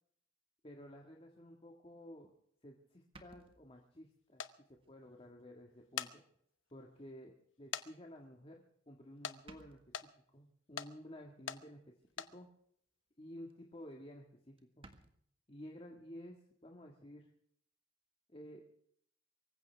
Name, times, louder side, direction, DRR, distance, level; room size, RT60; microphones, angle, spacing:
voice 1, 0.6-2.3 2.6-4.4 4.7-6.2 6.7-12.5 13.2-14.9 15.5-16.3 16.6-17.3 18.3-18.7, equal, 30° left, 1 dB, 1.8 m, -53 dB
sound 1, 3.1-4.1 4.7-4.9 5.4-5.5 6.8-6.9 8.5-8.9 9.2-9.3 9.4-10.1 12.0-12.5 12.9-13.1 13.5-13.6 13.8-13.9 14.1-14.2 14.6-15.1, right 2 dB, 30° right, 1.7 m, -60 dB
sound 2, 4.4-4.5 5.7-6.1 6.7-6.8 7.7-7.9 8.2-8.3 9.2-9.4 9.9-10.1 10.8-10.9 11.5-11.6 12.1-12.3, left 8 dB, 80° left, 0.9 m, -41 dB
24.5 x 15.5 x 3.5 m, 0.67 s
head